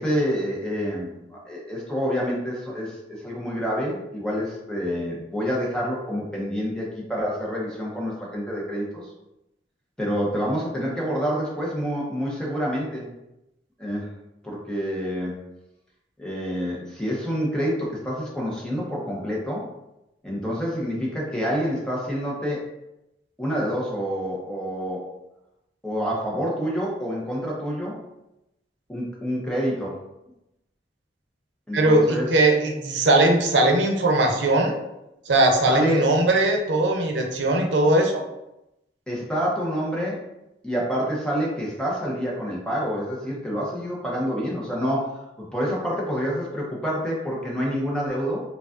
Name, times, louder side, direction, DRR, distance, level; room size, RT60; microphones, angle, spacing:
voice 1, 0.0-9.1 10.0-13.1 13.8-14.1 14.4-15.4 16.2-19.7 20.2-22.6 23.4-25.1 25.8-28.0 28.9-30.0 31.7-32.3 35.7-36.1 39.1-40.2 40.6-48.4, equal, 5° left, -4 dB, 0.8 m, -27 dB
voice 2, 31.7-34.8 35.3-38.2, right 2 dB, 90° right, 2 dB, 0.6 m, -20 dB
4.8 x 2.4 x 2.4 m, 0.90 s
head